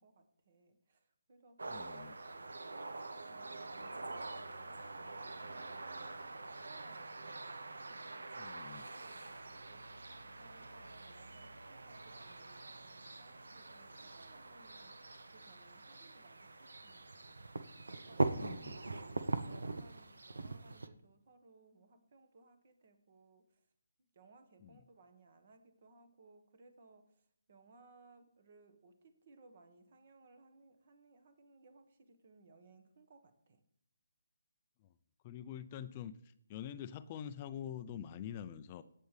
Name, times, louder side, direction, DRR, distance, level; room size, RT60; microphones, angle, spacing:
voice 1, 0.0-6.2 6.6-8.4 8.7-17.5 18.0-23.7 24.0-33.6, right 3 dB, 45° right, 9 dB, 1.5 m, -64 dB
sound 1, 1.6-20.9, right 3 dB, 80° right, 0.8 m, -43 dB
voice 2, 1.7-2.1 8.4-8.9 18.3-18.8 24.6-24.7 35.2-36.1 36.5-38.8, left 9 dB, 25° left, 12 dB, 0.5 m, -45 dB
17.0 x 7.6 x 3.4 m, 0.70 s
figure-of-eight pair, 155°, 0 cm